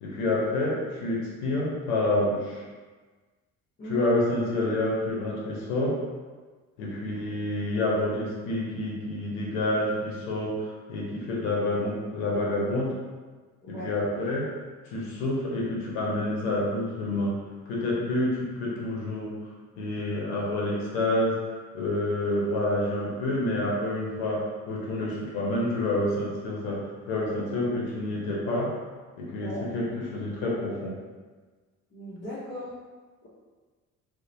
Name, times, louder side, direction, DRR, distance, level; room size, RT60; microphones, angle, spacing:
voice 1, 0.0-2.6 3.8-5.9 6.8-12.9 13.7-14.4 14.9-17.3 17.7-19.3 19.8-21.3 21.7-24.4 24.7-26.8 27.1-28.7 29.2-30.9, left 1 dB, 65° left, -4 dB, 0.8 m, -28 dB
voice 2, 13.6-13.9 29.4-29.6 31.9-32.7 33.2-33.3, left 1 dB, 25° left, -11 dB, 0.8 m, -37 dB
2.9 x 2.1 x 2.6 m, 1.4 s
figure-of-eight pair, 50°, 43 cm